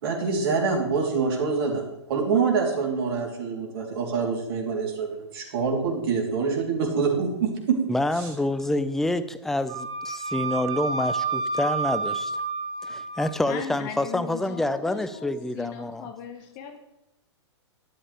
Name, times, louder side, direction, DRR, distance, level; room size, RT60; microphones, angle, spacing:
voice 1, 0.0-7.8, right 5 dB, 55° right, 0 dB, 3.5 m, -25 dB
voice 2, 7.9-12.3 12.8-16.1, left 1 dB, ahead, 12 dB, 0.5 m, -27 dB
Wind instrument woodwind instrument, 9.7-13.3, right 4 dB, 30° right, 3.1 m, -29 dB
voice 3, 13.4-16.8, left 8 dB, 40° left, 6 dB, 1.4 m, -38 dB
12.5 x 11.0 x 3.4 m, 0.88 s
figure-of-eight pair, 115°, 15 cm